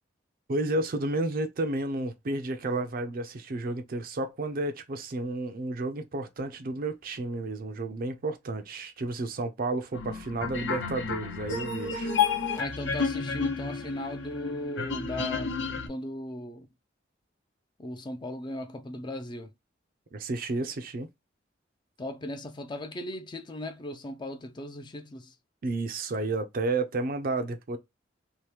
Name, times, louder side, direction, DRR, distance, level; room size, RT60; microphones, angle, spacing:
voice 1, 0.5-12.1 20.1-21.1 25.6-27.8, right 2 dB, 50° right, 0.5 m, -31 dB
sound 1, 9.9-15.9, left 5 dB, 75° left, 0.8 m, -31 dB
voice 2, 12.5-16.7 17.8-19.5 22.0-25.3, left 1 dB, 25° left, 0.4 m, -37 dB
2.8 x 2.1 x 3.2 m
head